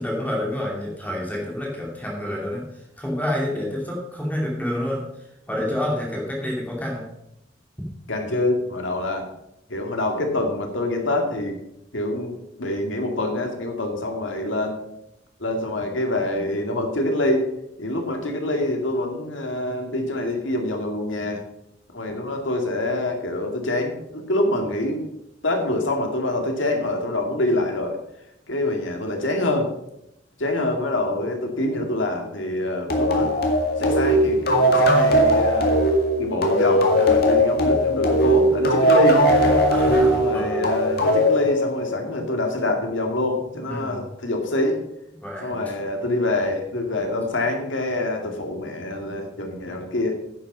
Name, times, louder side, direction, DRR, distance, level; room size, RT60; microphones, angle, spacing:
voice 1, 0.0-2.6 3.0-5.0 5.5-7.0 39.7-40.6 43.7-44.0 45.2-45.6, left 1 dB, 10° left, -2 dB, 2.5 m, -28 dB
voice 2, 8.1-9.3 9.7-11.6 11.9-12.3 12.6-14.8 15.4-17.5 17.8-21.4 21.9-25.0 25.4-28.0 28.5-29.7 30.4-33.4 33.8-35.8 36.2-39.2 40.1-44.8 45.4-50.2, left 1 dB, 75° left, 3 dB, 2.2 m, -25 dB
sound 1, 32.9-42.1, equal, 55° left, 2.1 m, -19 dB
10.5 x 8.4 x 5.5 m, 0.83 s
head